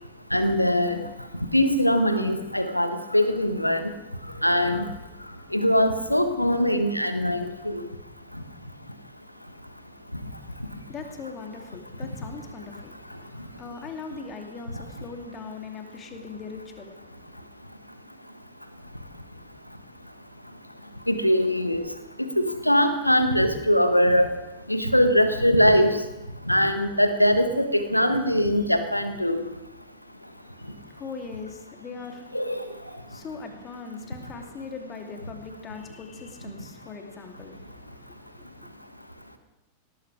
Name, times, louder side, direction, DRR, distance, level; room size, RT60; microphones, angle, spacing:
voice 1, 0.3-1.0 1.5-3.9 4.4-4.8 5.5-7.8 21.1-21.8 22.2-24.3 24.7-25.9 26.5-29.4 32.3-32.6, equal, 90° left, 9 dB, 1.4 m, -22 dB
voice 2, 10.4-17.5 30.4-32.4 33.0-38.7, left 4 dB, 25° left, 5 dB, 2.7 m, -41 dB
18.0 x 13.5 x 4.9 m, 0.99 s
figure-of-eight pair, 90°, 0 cm